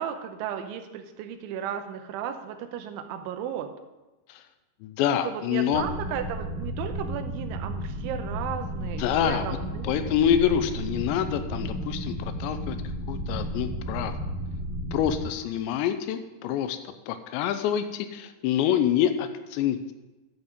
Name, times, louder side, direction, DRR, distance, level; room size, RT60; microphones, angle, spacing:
voice 1, 0.0-3.7 5.2-10.2, right 9 dB, 90° right, 8 dB, 3.2 m, -34 dB
voice 2, 4.8-5.9 9.0-9.5 9.9-12.8 13.1-14.1 14.9-19.9, left 9 dB, 85° left, 10 dB, 2.8 m, -26 dB
sound 1, 5.7-15.2, equal, 20° right, 2.0 m, -33 dB
12.0 x 7.1 x 5.3 m, 1.1 s
omnidirectional pair, 5.3 m